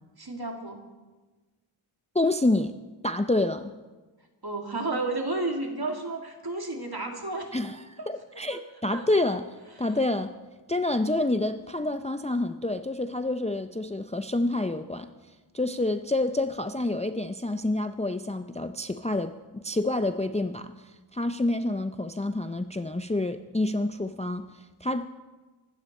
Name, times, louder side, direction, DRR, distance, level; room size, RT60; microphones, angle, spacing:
voice 1, 0.2-0.8 4.4-7.6 8.0-8.1 8.5-8.6 8.9-9.1 9.8-10.0, right 2 dB, 45° right, 2 dB, 2.5 m, -32 dB
voice 2, 2.1-2.7 3.0-3.7 7.5-9.4 9.8-10.4 10.7-15.1 15.5-20.7 21.1-25.1, left 2 dB, 15° left, 9 dB, 0.5 m, -28 dB
24.5 x 12.5 x 4.3 m, 1.3 s
wide cardioid pair, 55°, 50 cm